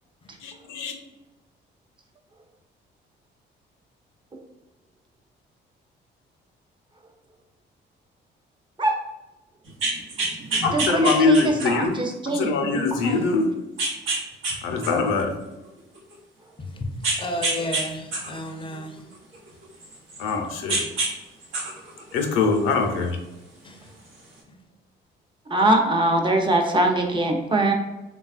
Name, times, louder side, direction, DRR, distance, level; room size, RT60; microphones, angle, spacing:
voice 1, 0.4-0.9 10.6-13.6 14.6-15.4 20.2-20.8 22.1-23.2, left 4 dB, 90° left, 0.5 m, -23 dB
sound 1, 9.7-11.9 12.5-12.6 13.8-14.6 14.8-16.1 17.0-17.8 18.1-20.3 20.7-21.1 21.4-22.8 23.9-24.0, right 3 dB, 85° right, 0.9 m, -27 dB
voice 2, 10.7-12.7 13.0-13.2 17.6-17.7 25.5-27.7, right 1 dB, 25° right, 0.5 m, -22 dB
voice 3, 16.6-16.9 17.2-19.1 23.6-23.8 24.5-24.6, left 1 dB, 25° left, 0.4 m, -32 dB
3.3 x 2.2 x 2.4 m
cardioid pair, 90°, 20 cm